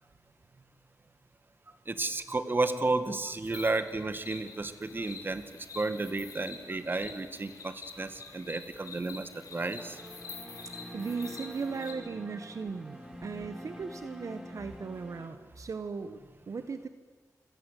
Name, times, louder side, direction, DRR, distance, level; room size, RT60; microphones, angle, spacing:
voice 1, 1.9-5.4 5.7-10.0 12.3-12.4, right 3 dB, 35° right, 9 dB, 2.1 m, -32 dB
sound 1, 3.5-11.9, left 4 dB, 75° left, 4.9 m, -47 dB
sound 2, 9.8-15.3, equal, 5° right, 3.9 m, -46 dB
voice 2, 10.9-16.2 16.5-16.9, right 5 dB, 60° right, 9 dB, 1.3 m, -37 dB
28.5 x 24.5 x 8.5 m, 1.4 s
wide cardioid pair, 95°, 6 cm